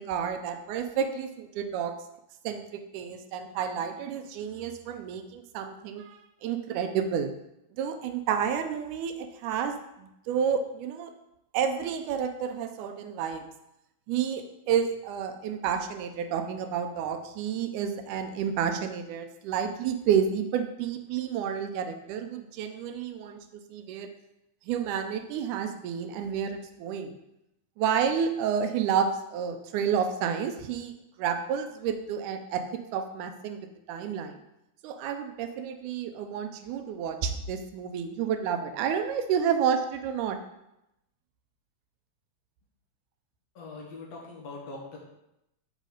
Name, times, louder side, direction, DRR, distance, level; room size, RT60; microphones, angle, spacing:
voice 1, 0.0-1.9 2.4-7.3 7.8-11.1 11.5-13.5 14.1-24.1 24.7-27.2 27.8-30.9 31.2-32.6 32.9-33.6 33.9-34.4 34.8-40.4, right 7 dB, 85° right, 7 dB, 2.1 m, -30 dB
voice 2, 43.6-45.0, left 3 dB, 65° left, -2 dB, 2.2 m, -42 dB
7.4 x 4.9 x 3.9 m, 0.85 s
omnidirectional pair, 3.5 m